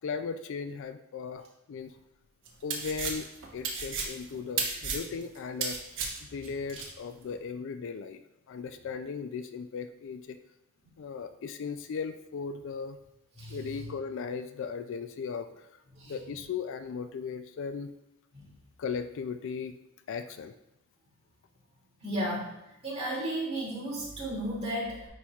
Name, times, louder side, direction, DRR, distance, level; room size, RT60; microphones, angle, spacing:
voice 1, 0.0-1.9 2.6-3.3 3.5-5.8 6.3-8.2 8.5-10.4 11.0-13.0 13.5-15.7 16.1-17.9 18.8-19.8 20.1-20.5, left 5 dB, 55° left, 10 dB, 0.3 m, -37 dB
sound 1, 2.5-6.9, right 5 dB, 55° right, 1.0 m, -34 dB
voice 2, 13.4-13.9 15.9-16.1 18.3-18.5 22.0-22.5 22.8-25.1, right 1 dB, 30° right, -6 dB, 2.3 m, -34 dB
9.6 x 4.3 x 2.4 m, 0.89 s
head